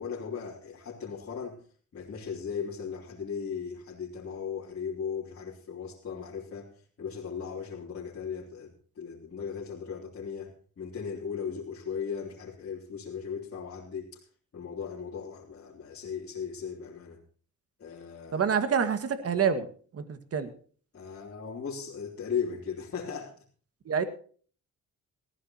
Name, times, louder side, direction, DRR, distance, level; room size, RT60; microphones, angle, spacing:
voice 1, 0.0-1.6 1.9-6.7 7.0-14.1 14.5-17.2 17.8-18.5 20.9-23.3, left 6 dB, 50° left, -4 dB, 3.3 m, -37 dB
voice 2, 18.3-19.7 19.9-20.5 23.9-24.0, right 6 dB, 50° right, 9 dB, 2.0 m, -27 dB
19.0 x 14.0 x 2.9 m, 0.43 s
cardioid pair, 90°, 30 cm